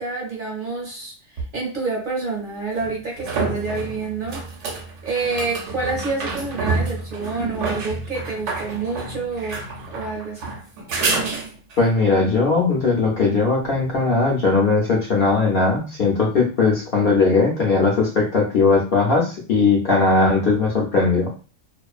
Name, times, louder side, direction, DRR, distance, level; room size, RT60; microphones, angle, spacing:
voice 1, 0.0-4.4 5.0-9.6 9.9-10.4, right 3 dB, 50° right, -2 dB, 0.7 m, -28 dB
sound 1, 1.4-1.5 2.8-11.9 15.3-15.4, right 4 dB, 65° right, 0.9 m, -28 dB
voice 2, 11.8-21.3, left 4 dB, 60° left, -1 dB, 0.6 m, -19 dB
2.4 x 2.2 x 2.3 m, 0.35 s
omnidirectional pair, 1.4 m